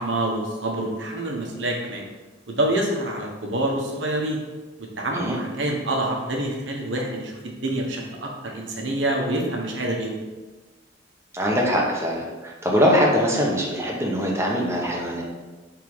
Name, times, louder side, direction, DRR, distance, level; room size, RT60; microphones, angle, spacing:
voice 1, 0.0-2.0 2.5-4.4 4.8-10.2, right 1 dB, 70° right, 0 dB, 1.2 m, -27 dB
voice 2, 11.3-15.2, equal, 15° right, -2 dB, 1.1 m, -22 dB
5.6 x 3.7 x 4.8 m, 1.2 s
head